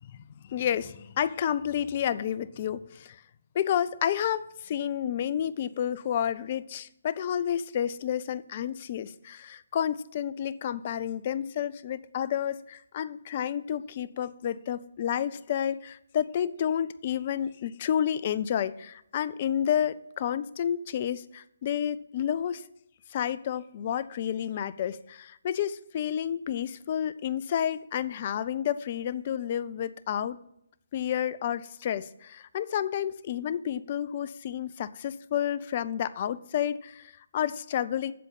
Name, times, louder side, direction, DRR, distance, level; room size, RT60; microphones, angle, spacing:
voice 1, 0.1-3.2 3.5-22.6 23.1-30.4 30.9-38.1, left 9 dB, 35° left, 16 dB, 0.4 m, -30 dB
7.7 x 7.6 x 5.6 m, 0.76 s
figure-of-eight pair, 140°, 0 cm